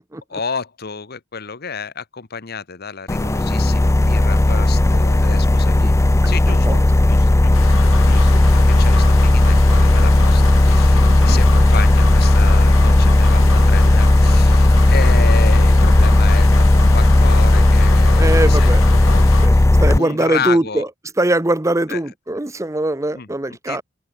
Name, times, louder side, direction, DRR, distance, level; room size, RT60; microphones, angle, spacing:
voice 1, 0.3-5.9 6.2-6.8 7.1-7.6 8.1-18.7 19.0-19.7 19.9-20.8 21.9-22.0 23.1-23.8, left 5 dB, 50° left, 1.1 m, -31 dB
sound 1, 3.1-20.0, left 1 dB, 15° left, 0.4 m, -13 dB
sound 2, 7.5-19.5, left 5 dB, 85° left, 2.7 m, -30 dB
voice 2, 18.2-18.8 19.4-20.9 21.2-23.8, right 1 dB, 15° right, 0.8 m, -21 dB
open air
head